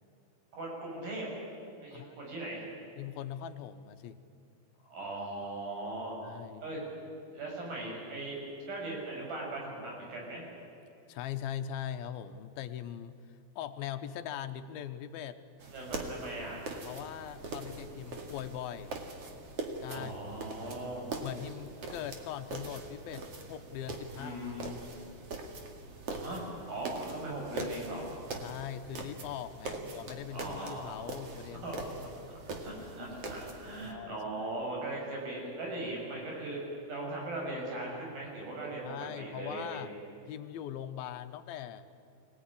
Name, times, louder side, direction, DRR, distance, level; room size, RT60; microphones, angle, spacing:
voice 1, 0.5-1.3 1.8-2.7 4.8-6.2 6.6-6.8 7.3-10.5 15.7-16.6 19.9-21.1 24.1-24.7 26.2-28.1 29.6-29.9 30.3-31.0 31.6-31.8 32.6-39.8, right 2 dB, 70° right, -2 dB, 8.4 m, -39 dB
voice 2, 1.9-2.3 3.0-4.2 6.2-6.7 11.1-13.2 13.6-15.4 16.8-19.0 19.8-20.1 21.2-24.8 28.4-31.8 32.7-32.8 33.8-34.5 38.8-39.9 40.3-41.9, left 10 dB, 85° left, 9 dB, 2.7 m, -41 dB
sound 1, 15.6-33.9, right 3 dB, 45° right, 2.7 m, -42 dB
25.0 x 18.5 x 10.0 m, 2.7 s
omnidirectional pair, 4.3 m